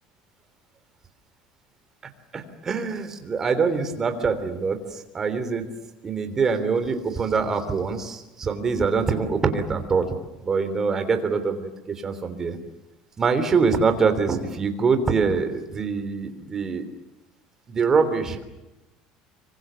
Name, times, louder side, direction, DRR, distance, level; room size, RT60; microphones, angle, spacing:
voice 1, 2.3-5.7 6.0-10.1 10.4-12.6 13.2-16.9 17.7-18.4, right 5 dB, 20° right, 8 dB, 3.4 m, -24 dB
26.0 x 25.0 x 7.0 m, 0.99 s
cardioid pair, 165°, 2 cm